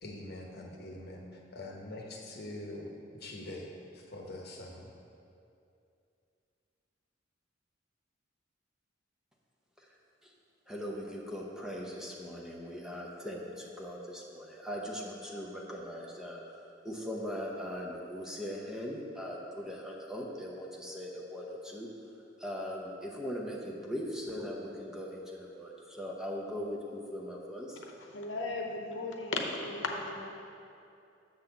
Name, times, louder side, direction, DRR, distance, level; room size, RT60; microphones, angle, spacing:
voice 1, 0.0-4.9, left 1 dB, 60° left, 0 dB, 1.0 m, -44 dB
voice 2, 10.7-21.9 22.4-27.8, equal, 5° right, -2 dB, 0.7 m, -40 dB
voice 3, 27.7-30.3, left 3 dB, 80° left, 2 dB, 0.8 m, -36 dB
7.2 x 4.1 x 6.6 m, 2.6 s
head